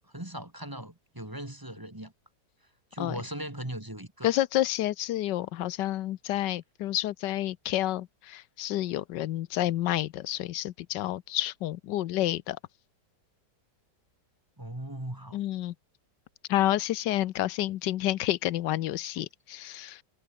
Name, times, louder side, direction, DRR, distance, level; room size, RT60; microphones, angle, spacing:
voice 1, 0.1-2.1 2.9-4.3 14.6-15.4, right 1 dB, 10° right, 2.1 m, -38 dB
voice 2, 4.2-12.6 15.3-15.7 16.5-20.0, left 14 dB, 90° left, 1.4 m, -29 dB
omnidirectional pair, 1.8 m